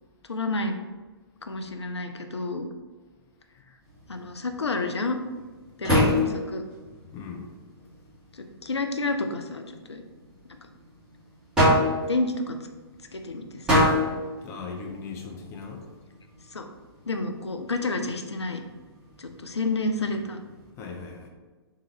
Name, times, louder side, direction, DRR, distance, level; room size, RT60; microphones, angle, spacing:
voice 1, 0.3-0.8 1.4-2.7 4.1-5.2 5.8-6.6 8.3-9.6 9.9-10.0 12.1-12.6 13.1-13.7 16.5-16.7 17.1-18.6 19.2-20.4, left 2 dB, 85° left, 6 dB, 0.4 m, -29 dB
sound 1, 3.8-20.7, left 1 dB, 5° right, 1.4 m, -30 dB
voice 2, 7.1-7.5 14.4-15.8 20.8-21.3, left 5 dB, 20° left, 1 dB, 0.5 m, -38 dB
3.6 x 2.8 x 3.1 m, 1.3 s
figure-of-eight pair, 115°, 14 cm